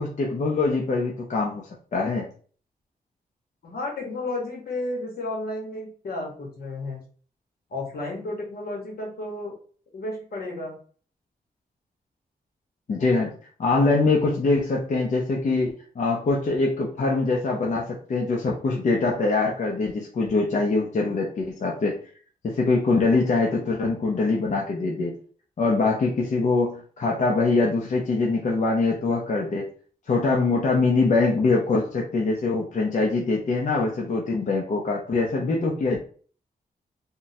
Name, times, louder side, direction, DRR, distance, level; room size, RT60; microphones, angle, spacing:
voice 1, 0.0-1.6 1.9-2.3 12.9-13.3 13.6-22.0 22.4-25.1 25.6-29.7 30.1-36.0, left 3 dB, 50° left, -2 dB, 0.6 m, -23 dB
voice 2, 3.6-7.0 7.7-9.5 9.9-10.8, left 2 dB, 75° left, -1 dB, 1.1 m, -32 dB
3.6 x 2.1 x 2.6 m, 0.43 s
wide cardioid pair, 110°, 16 cm